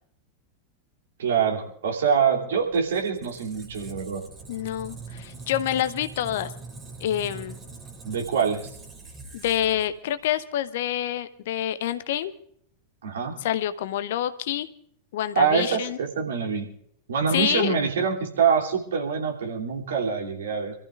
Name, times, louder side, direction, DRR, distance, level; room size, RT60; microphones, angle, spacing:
voice 1, 1.2-4.2 8.0-8.6 13.0-13.4 15.3-16.7 17.1-20.7, right 6 dB, 65° right, 0 dB, 3.0 m, -25 dB
Squeak, 2.6-10.4, right 3 dB, 20° right, 2.6 m, -43 dB
voice 2, 4.5-6.5 7.0-7.6 9.3-12.3 13.4-14.7 15.1-16.0 17.3-17.8, left 11 dB, 55° left, 12 dB, 0.9 m, -27 dB
27.0 x 14.5 x 2.5 m, 0.65 s
figure-of-eight pair, 90°, 0 cm